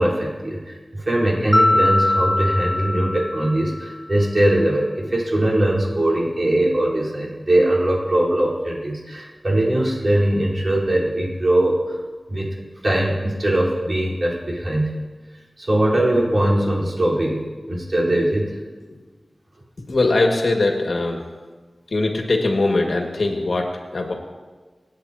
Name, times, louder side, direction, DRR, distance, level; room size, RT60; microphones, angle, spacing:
voice 1, 0.0-11.8 12.3-14.9 15.6-18.6, right 1 dB, 50° right, -5 dB, 4.2 m, -21 dB
Mallet percussion, 1.5-3.9, left 1 dB, 30° left, 0.7 m, -21 dB
voice 2, 19.9-21.2 21.9-24.1, left 2 dB, 85° left, 1 dB, 1.9 m, -21 dB
26.5 x 9.0 x 2.9 m, 1.4 s
wide cardioid pair, 60°, 0 cm